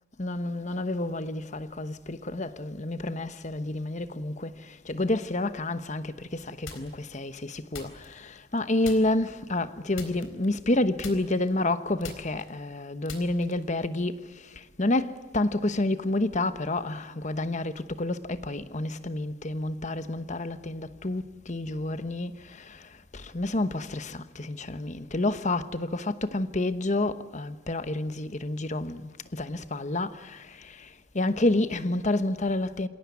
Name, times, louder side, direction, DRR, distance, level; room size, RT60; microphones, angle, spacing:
voice 1, 0.2-32.9, left 2 dB, 35° left, 1.1 m, -29 dB
sound 1, 6.7-7.2 7.7-8.5 8.8-9.3 9.9-10.7 11.0-13.8, left 4 dB, 80° left, 4.0 m, -44 dB
27.0 x 18.0 x 9.5 m
head